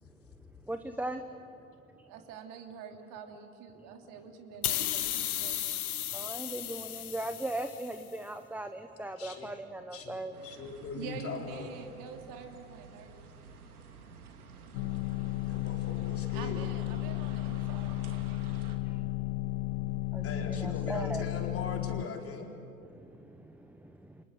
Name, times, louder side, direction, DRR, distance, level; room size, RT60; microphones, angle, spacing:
voice 1, 0.1-1.6 1.9-2.1 3.8-3.9 6.1-10.4 13.9-14.0 18.8-19.0 20.1-21.3 22.8-24.2, right 1 dB, 5° right, 8 dB, 1.0 m, -39 dB
voice 2, 2.1-5.6 11.0-13.3 16.3-18.4, right 7 dB, 50° right, 4 dB, 3.2 m, -46 dB
sound 1, 4.6-8.0, left 11 dB, 75° left, 1.5 m, -34 dB
voice 3, 9.2-9.5 9.9-11.7 15.4-16.7 20.2-22.5, left 4 dB, 30° left, 2 dB, 4.3 m, -40 dB
sound 2, 10.3-18.8, right 4 dB, 75° right, 3.0 m, -51 dB
sound 3, 14.7-22.1, left 16 dB, 45° left, 0.9 m, -34 dB
30.0 x 25.5 x 7.8 m, 2.6 s
hypercardioid pair, 95°, 44 cm